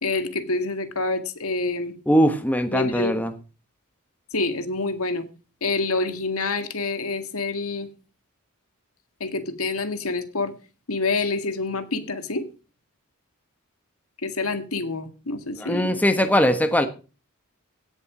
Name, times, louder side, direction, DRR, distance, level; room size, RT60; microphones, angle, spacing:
voice 1, 0.0-1.9 2.7-3.1 4.3-5.3 5.6-7.9 9.2-10.5 10.9-12.5 14.2-15.9, left 3 dB, 80° left, 9 dB, 2.0 m, -27 dB
voice 2, 2.1-3.3 15.6-16.9, equal, 5° left, 8 dB, 1.2 m, -20 dB
17.0 x 7.2 x 6.1 m, 0.35 s
head